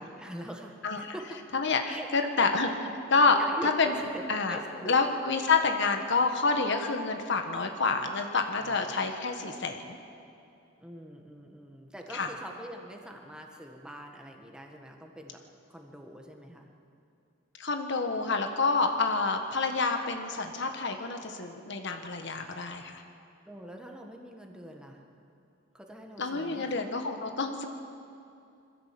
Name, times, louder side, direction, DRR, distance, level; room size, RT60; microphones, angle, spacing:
voice 1, 0.0-1.4 1.9-2.1 3.1-5.0 8.6-8.9 10.8-15.4 15.7-16.7 23.5-25.0 25.7-26.8, equal, 5° right, 1 dB, 1.7 m, -43 dB
voice 2, 0.8-1.1 1.5-2.7 3.1-3.4 3.6-3.9 4.3-4.6 4.9-10.0 12.1-12.3 17.6-23.0 26.2-27.7, left 4 dB, 60° left, 5 dB, 1.5 m, -28 dB
22.0 x 15.5 x 7.7 m, 2.6 s
head